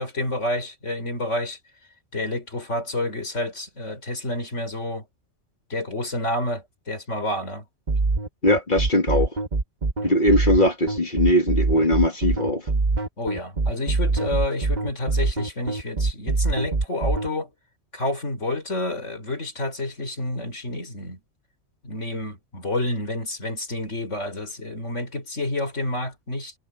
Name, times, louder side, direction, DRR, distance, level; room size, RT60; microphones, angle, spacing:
voice 1, 0.0-1.6 2.1-5.0 5.7-7.6 10.0-10.1 13.2-17.5 17.9-21.2 21.8-26.5, left 1 dB, 80° left, 5.1 m, -29 dB
sound 1, 7.9-17.3, right 3 dB, 40° right, 1.3 m, -23 dB
voice 2, 8.4-9.3 10.0-12.7, left 1 dB, 40° left, 2.1 m, -20 dB
omnidirectional pair, 1.2 m